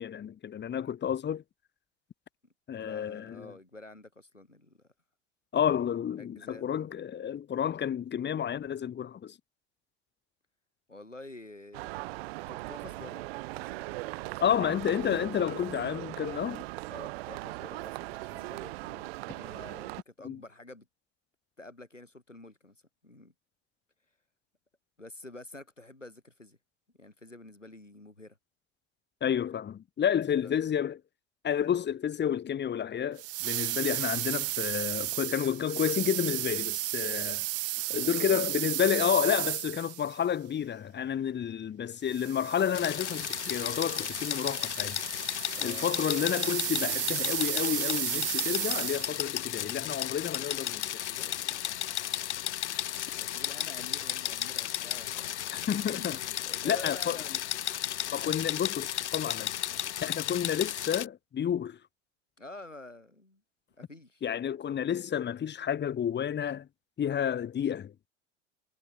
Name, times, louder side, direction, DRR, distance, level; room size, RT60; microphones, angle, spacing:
voice 1, 0.0-1.4 2.7-3.5 5.5-9.3 14.4-16.6 20.2-20.4 29.2-31.0 31.4-37.4 37.9-45.0 45.6-50.8 55.5-56.2 56.6-57.2 58.1-59.5 60.0-61.8 64.2-66.7 67.0-67.9, left 9 dB, 30° left, 4.6 m, -30 dB
voice 2, 2.9-4.8 6.2-6.9 10.9-12.1 12.5-13.3 13.5-14.5 16.9-20.9 21.6-22.8 23.0-23.3 25.0-26.6 27.0-28.4 30.4-30.6 37.8-38.5 45.5-45.9 51.1-51.9 53.2-55.6 55.8-57.4 59.7-60.0 62.4-63.4 63.8-64.2, left 2 dB, 90° left, 7.2 m, -49 dB
sound 1, 11.7-20.0, right 22 dB, 55° right, 2.2 m, -39 dB
sound 2, 33.2-40.2 42.1-49.3, right 19 dB, 40° right, 1.7 m, -34 dB
sound 3, 42.7-61.1, left 12 dB, 65° left, 4.5 m, -34 dB
figure-of-eight pair, 75°, 36 cm